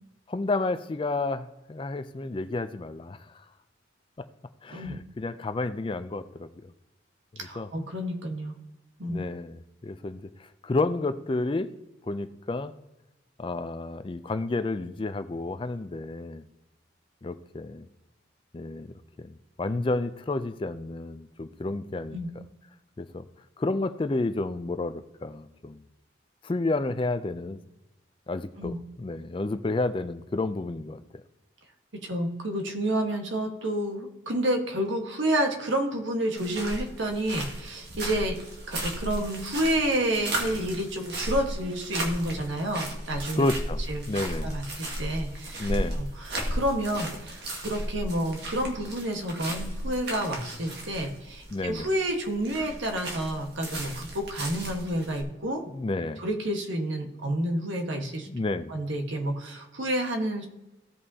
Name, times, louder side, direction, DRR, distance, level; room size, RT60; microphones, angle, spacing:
voice 1, 0.3-3.2 4.6-6.5 7.5-7.7 9.1-10.2 10.6-11.7 12.0-12.7 13.4-16.4 17.2-17.9 18.5-22.2 23.0-23.2 23.6-25.8 26.4-27.6 28.3-31.0 43.4-43.8 44.1-44.5 45.6-46.0 51.5-51.9 55.7-56.2 58.3-58.7, left 2 dB, 25° left, 11 dB, 0.4 m, -30 dB
voice 2, 7.4-8.6 9.0-9.2 22.1-22.3 28.6-28.8 32.0-38.4 38.7-43.5 43.9-44.0 44.4-55.6 56.2-58.3 58.7-60.5, right 1 dB, 75° right, 3 dB, 1.4 m, -29 dB
sound 1, 36.4-55.2, right 1 dB, 55° right, 1.8 m, -35 dB
16.0 x 5.4 x 2.8 m, 0.97 s
head